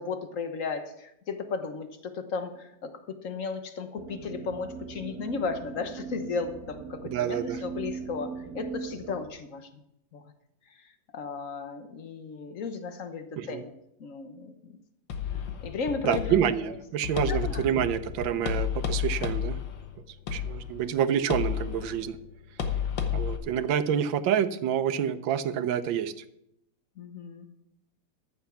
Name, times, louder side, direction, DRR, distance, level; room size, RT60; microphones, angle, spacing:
voice 1, 0.0-9.8 10.1-10.2 10.7-13.7 14.0-14.8 15.6-16.5 17.2-17.6 18.3-18.5 27.0-27.5, left 4 dB, 50° left, 8 dB, 1.3 m, -35 dB
sound 1, 4.0-9.3, right 5 dB, 60° right, 1.4 m, -40 dB
voice 2, 7.0-7.6 13.4-13.6 16.0-19.6 20.3-22.2 23.1-26.2, right 9 dB, 85° right, 12 dB, 1.5 m, -28 dB
sound 2, 15.1-23.4, left 8 dB, 80° left, 1.8 m, -32 dB
14.0 x 7.1 x 5.8 m, 0.80 s
omnidirectional pair, 2.0 m